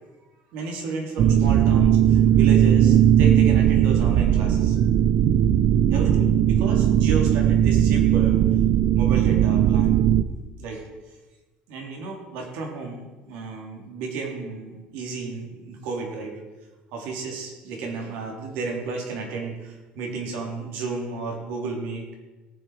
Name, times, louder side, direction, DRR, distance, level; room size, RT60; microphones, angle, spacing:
voice 1, 0.5-4.8 5.9-8.4 8.9-10.1 10.6-10.9 11.7-16.4 16.9-22.0, right 4 dB, 80° right, 1 dB, 3.2 m, -33 dB
sound 1, 1.2-10.2, right 10 dB, 60° right, 0.6 m, -18 dB
17.5 x 7.6 x 5.0 m, 1.2 s
cardioid pair, 135°, 3 cm